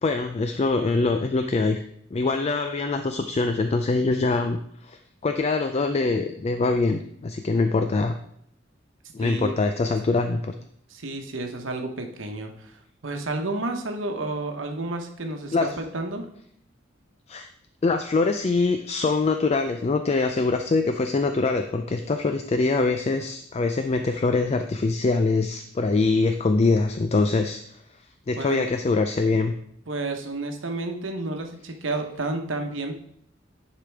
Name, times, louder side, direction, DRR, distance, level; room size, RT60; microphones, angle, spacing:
voice 1, 0.0-1.8 2.1-8.1 9.1-10.5 15.5-15.7 17.3-17.5 17.8-27.6 28.3-29.5, left 3 dB, 35° left, 7 dB, 0.4 m, -23 dB
voice 2, 9.2-9.6 10.9-16.2 28.4-28.7 29.9-33.0, right 2 dB, 85° right, 4 dB, 1.0 m, -31 dB
10.0 x 5.0 x 3.5 m, 0.68 s
head